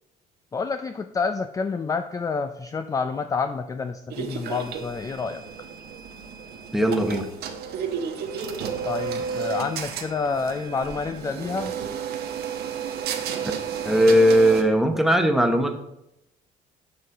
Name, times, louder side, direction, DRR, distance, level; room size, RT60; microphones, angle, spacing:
voice 1, 0.5-5.4 8.8-11.7, left 4 dB, 20° left, 8 dB, 0.4 m, -28 dB
sound 1, 4.1-14.6, right 7 dB, 70° right, 1.0 m, -32 dB
voice 2, 6.7-7.3 13.8-15.8, equal, ahead, 5 dB, 0.9 m, -18 dB
6.8 x 6.8 x 3.7 m, 0.83 s
cardioid pair, 110°, 17 cm